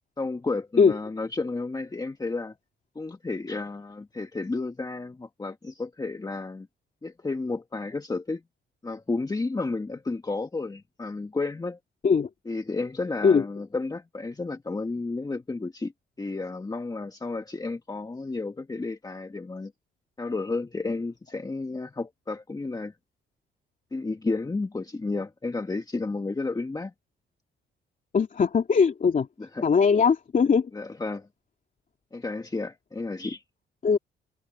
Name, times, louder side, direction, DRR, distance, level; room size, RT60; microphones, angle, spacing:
voice 1, 0.2-2.5 2.9-6.7 7.0-8.4 8.8-11.8 12.5-15.9 16.2-19.7 20.2-22.9 23.9-26.9 29.4-29.7 30.7-31.3 32.1-33.4, left 3 dB, 20° left, 1.6 m, -32 dB
voice 2, 28.1-29.3 29.6-30.7 33.8-34.0, left 5 dB, 40° left, 2.9 m, -20 dB
cardioid pair, 90°, 20 cm